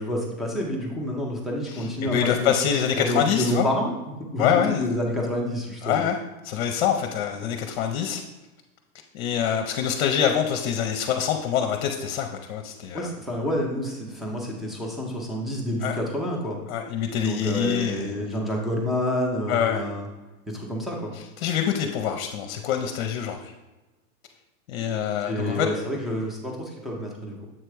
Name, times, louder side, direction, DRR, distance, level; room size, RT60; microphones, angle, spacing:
voice 1, 0.0-2.5 2.9-3.9 4.3-6.0 12.9-16.6 17.2-20.1 20.5-21.1 25.2-27.5, equal, ahead, -1 dB, 0.5 m, -28 dB
voice 2, 1.7-3.7 4.4-4.9 5.8-6.2 6.4-8.2 9.1-13.1 15.8-16.0 16.7-18.4 19.5-19.9 21.4-23.5 24.7-25.7, left 8 dB, 50° left, 5 dB, 0.7 m, -25 dB
7.5 x 3.3 x 4.7 m, 1.1 s
hypercardioid pair, 140°, 45 cm